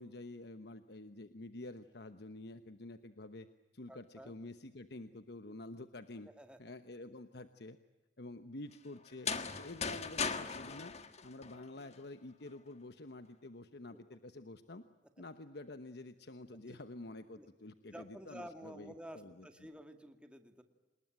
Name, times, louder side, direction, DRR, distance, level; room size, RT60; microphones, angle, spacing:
voice 1, 0.0-3.5 3.7-6.3 6.6-7.8 8.2-9.3 9.6-10.9 11.2-14.8 15.2-19.7, left 2 dB, 65° left, 10 dB, 1.1 m, -49 dB
voice 2, 3.9-4.3 6.4-6.6 13.9-14.0 16.5-16.8 17.4-17.5 17.9-20.6, equal, 5° right, 7 dB, 2.1 m, -51 dB
sound 1, 9.1-12.0, left 5 dB, 40° left, 1.7 m, -38 dB
27.5 x 20.5 x 9.2 m, 1.1 s
head